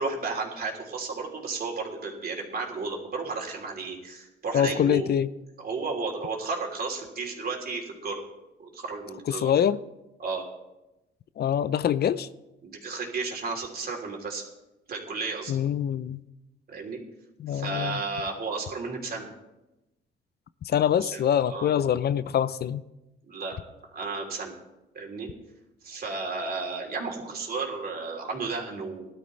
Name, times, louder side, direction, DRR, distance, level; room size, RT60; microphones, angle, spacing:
voice 1, 0.0-5.1 5.6-8.2 8.6-9.5 10.2-10.4 12.6-14.4 14.9-15.6 16.7-17.0 17.5-19.3 21.0-21.2 21.5-21.7 23.3-23.6 23.9-24.5 24.9-25.3 25.8-29.1, right 4 dB, 50° right, 0 dB, 3.4 m, -33 dB
voice 2, 4.5-5.3 9.3-9.8 11.4-12.3 15.5-16.2 17.4-18.0 20.6-22.8, left 9 dB, 55° left, 15 dB, 0.5 m, -24 dB
18.5 x 12.0 x 3.3 m, 0.97 s
cardioid pair, 90°, 20 cm